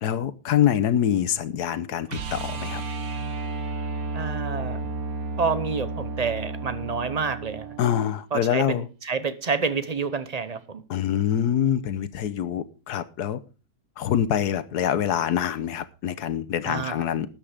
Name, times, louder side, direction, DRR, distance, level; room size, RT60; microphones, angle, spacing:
voice 1, 0.0-2.8 7.8-8.8 10.9-13.4 14.0-17.3, left 10 dB, 80° left, 13 dB, 1.5 m, -25 dB
sound 1, 2.1-8.1 10.6-10.7, right 3 dB, 65° right, 1.5 m, -32 dB
voice 2, 4.1-4.8 5.4-7.7 8.3-10.8 16.7-16.9, right 5 dB, 30° right, 13 dB, 0.8 m, -28 dB
13.0 x 8.9 x 5.0 m, 0.34 s
omnidirectional pair, 1.7 m